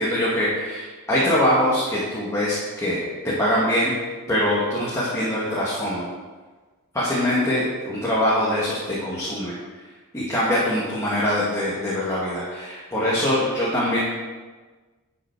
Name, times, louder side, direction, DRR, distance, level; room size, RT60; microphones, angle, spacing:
voice 1, 0.0-3.9 4.3-6.1 6.9-9.5 10.1-14.0, left 1 dB, 15° left, -9 dB, 2.0 m, -23 dB
11.5 x 6.1 x 4.7 m, 1.3 s
head